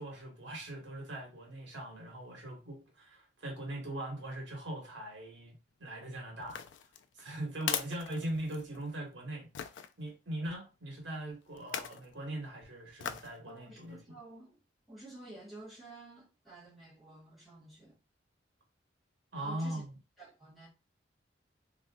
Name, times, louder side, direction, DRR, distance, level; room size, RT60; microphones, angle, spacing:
voice 1, 0.0-6.6 7.1-9.5 10.0-14.0 19.3-19.9, right 1 dB, 75° right, 1.2 m, -40 dB
sound 1, 6.4-8.9 9.5-9.9 11.6-12.0 13.0-13.4 13.8-13.9, left 9 dB, 75° left, 0.3 m, -39 dB
voice 2, 13.5-14.6 14.9-18.0 19.3-19.8 20.2-20.7, right 2 dB, ahead, 1.3 m, -51 dB
3.3 x 2.5 x 2.2 m
head